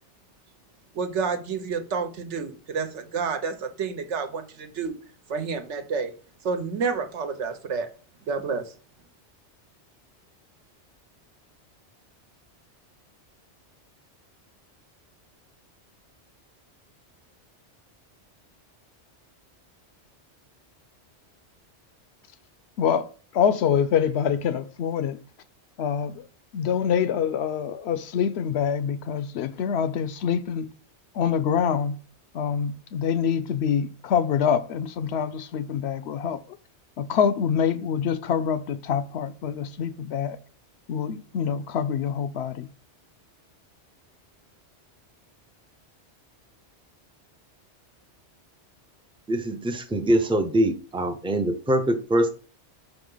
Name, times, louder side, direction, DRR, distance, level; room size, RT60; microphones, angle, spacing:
voice 1, 0.9-4.9 5.3-6.1 6.4-7.9 8.3-8.7, right 5 dB, 85° right, 1.2 m, -29 dB
voice 2, 22.8-25.2 25.8-26.3 26.5-30.7 31.1-32.0 32.3-36.6 37.0-40.4 40.9-42.7, left 7 dB, 70° left, 0.8 m, -25 dB
voice 3, 49.3-52.3, right 1 dB, 10° right, 0.4 m, -23 dB
5.4 x 4.9 x 3.8 m
omnidirectional pair, 1.2 m